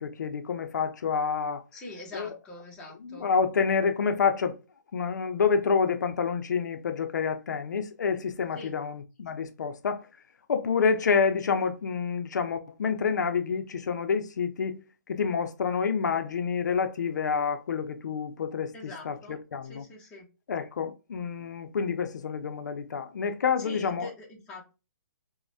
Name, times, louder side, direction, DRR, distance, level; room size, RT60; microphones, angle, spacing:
voice 1, 0.0-1.6 2.1-2.3 3.0-4.6 4.9-10.1 10.5-14.8 15.1-19.8 20.5-24.1, left 6 dB, 70° left, 0.4 m, -28 dB
voice 2, 1.7-3.3 8.6-8.7 18.7-20.3 23.6-24.7, left 2 dB, 10° left, 0.5 m, -44 dB
3.1 x 2.1 x 2.6 m
hypercardioid pair, 160°, 10 cm